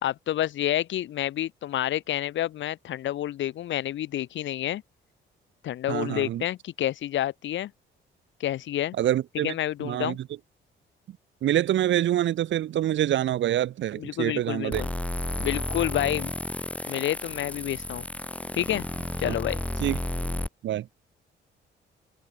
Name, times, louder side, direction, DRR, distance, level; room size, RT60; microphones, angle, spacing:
voice 1, 0.0-4.8 5.6-7.7 8.4-9.0 9.4-10.2 14.0-14.9 15.4-16.3 16.9-18.1 18.5-18.9 19.2-19.6, left 12 dB, 70° left, 1.1 m, -29 dB
voice 2, 5.9-6.4 9.0-9.5 9.8-10.3 11.4-14.9 19.2-19.3 19.8-20.0 20.6-20.9, right 12 dB, 70° right, 1.4 m, -26 dB
sound 1, 14.7-20.5, left 1 dB, 5° left, 1.1 m, -32 dB
cardioid pair, 90°, 20 cm